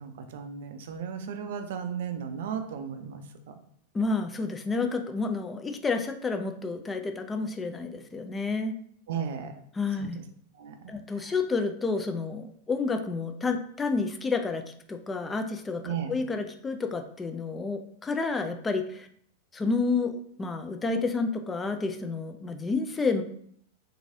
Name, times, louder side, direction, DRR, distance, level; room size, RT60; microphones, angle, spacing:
voice 1, 0.0-3.6 9.1-9.5 10.0-10.1 10.5-10.9 11.2-11.3 15.8-16.1, right 7 dB, 55° right, 7 dB, 0.4 m, -35 dB
voice 2, 3.9-8.7 9.7-10.2 10.9-19.1 19.5-23.2, left 4 dB, 15° left, 6 dB, 0.3 m, -30 dB
3.0 x 2.6 x 2.6 m, 0.65 s
figure-of-eight pair, 90°, 0 cm